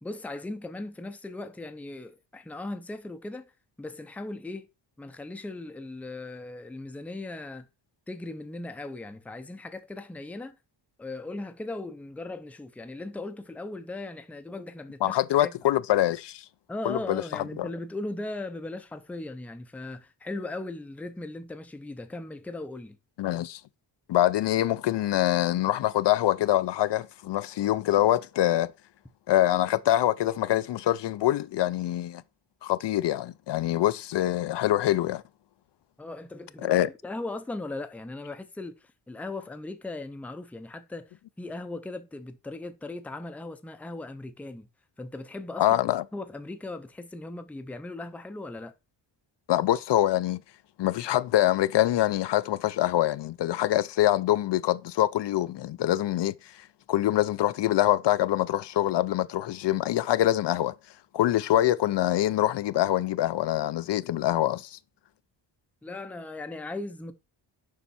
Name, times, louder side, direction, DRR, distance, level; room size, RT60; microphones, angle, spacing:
voice 1, 0.0-3.5 3.8-4.7 5.0-7.7 8.1-10.6 11.0-15.5 16.7-23.0 36.0-44.7 45.0-48.7 65.8-67.1, left 2 dB, 5° left, 0.5 m, -38 dB
voice 2, 15.0-16.4 16.8-17.7 23.2-23.6 24.1-28.7 29.3-32.2 32.6-35.2 36.6-36.9 45.6-46.0 49.5-50.4 50.8-56.3 56.9-60.8 61.1-64.8, left 13 dB, 65° left, 0.5 m, -25 dB
7.0 x 5.6 x 4.1 m
wide cardioid pair, 170°, 45 cm